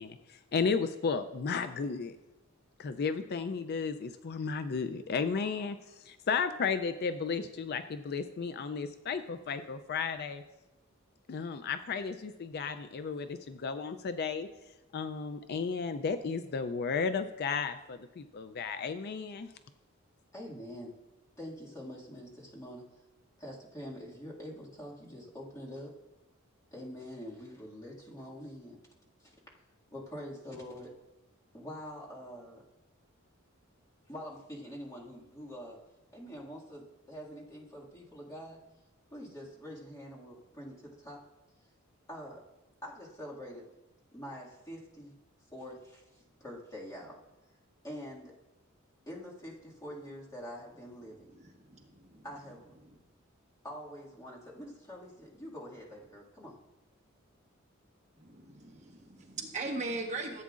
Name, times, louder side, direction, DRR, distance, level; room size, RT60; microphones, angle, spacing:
voice 1, 0.0-2.2 2.8-10.4 11.3-14.5 14.9-19.5, left 5 dB, 50° left, 10 dB, 0.4 m, -34 dB
voice 2, 20.3-20.9 21.4-23.0 23.4-25.9 26.7-28.8 29.2-29.3 29.9-30.9 31.5-32.6 34.1-35.8 36.1-38.6 39.1-41.2 42.1-42.4 42.8-43.7 44.1-45.2 45.5-47.2 47.8-48.3 49.1-51.4 52.2-52.6 53.6-56.6, equal, 15° left, -5 dB, 2.0 m, -45 dB
voice 3, 51.1-52.2 52.8-53.0 58.2-60.4, right 3 dB, 35° right, 0 dB, 1.2 m, -40 dB
15.0 x 8.3 x 2.5 m, 1.0 s
head